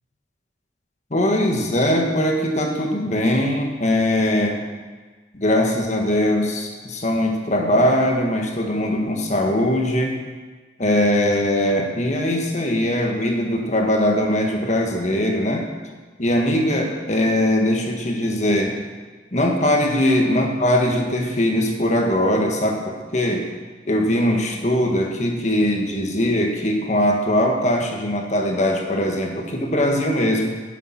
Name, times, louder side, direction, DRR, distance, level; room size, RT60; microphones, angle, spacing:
voice 1, 1.1-4.6 5.3-10.2 10.8-15.6 16.2-18.8 19.3-23.5 23.9-30.5, left 1 dB, 40° left, 1 dB, 1.5 m, -21 dB
10.0 x 7.3 x 5.7 m, 1.4 s
head